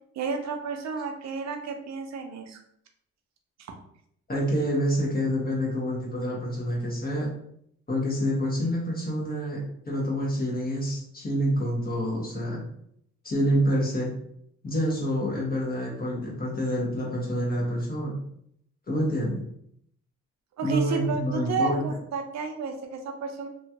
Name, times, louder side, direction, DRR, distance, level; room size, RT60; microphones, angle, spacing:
voice 1, 0.1-2.6 3.6-3.7 20.6-23.5, right 4 dB, 60° right, 4 dB, 0.6 m, -31 dB
voice 2, 4.3-7.3 7.9-12.6 13.2-14.1 14.6-18.2 18.9-19.4 20.6-21.8, equal, 30° left, -4 dB, 1.2 m, -27 dB
2.9 x 2.4 x 2.8 m, 0.71 s
cardioid pair, 90°, 30 cm